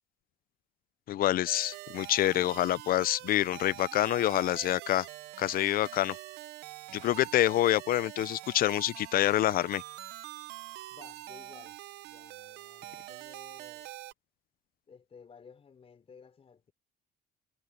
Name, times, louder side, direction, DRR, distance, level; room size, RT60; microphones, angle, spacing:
voice 1, 1.1-5.1 5.4-6.2 6.9-9.8, left 13 dB, 60° left, 0.5 m, -27 dB
sound 1, 1.5-14.1, right 17 dB, 80° right, 0.7 m, -45 dB
voice 2, 10.9-13.9 14.9-16.7, left 6 dB, 35° left, 4.5 m, -55 dB
cardioid pair, 110°, 17 cm